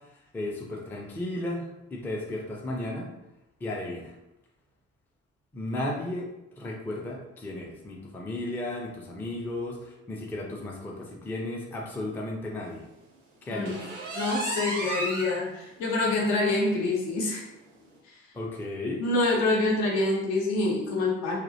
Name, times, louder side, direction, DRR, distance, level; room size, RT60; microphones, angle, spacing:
voice 1, 0.3-3.1 3.6-4.1 5.5-6.3 6.6-12.8 13.5-13.8 18.3-19.0, left 1 dB, 5° left, -1 dB, 0.3 m, -34 dB
voice 2, 13.5-13.8 14.1-17.4 18.1-18.2 19.0-21.4, left 2 dB, 65° left, -2 dB, 0.7 m, -26 dB
sound 1, 13.7-15.4 15.8-15.9 16.3-16.4 16.8-16.9 17.9-18.0, right 2 dB, 80° right, 0.5 m, -33 dB
2.4 x 2.0 x 2.6 m, 0.92 s
figure-of-eight pair, 45°, 37 cm